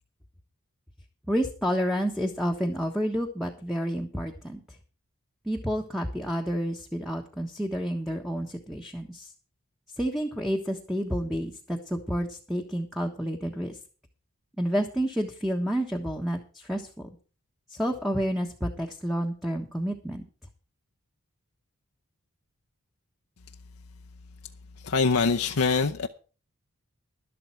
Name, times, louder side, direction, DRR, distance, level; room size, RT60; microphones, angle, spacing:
voice 1, 1.3-4.6 5.4-9.3 10.0-13.8 14.6-17.1 17.7-20.2, equal, ahead, 1.3 m, -29 dB
voice 2, 24.8-26.1, left 4 dB, 70° left, 0.7 m, -24 dB
12.0 x 11.5 x 4.6 m
head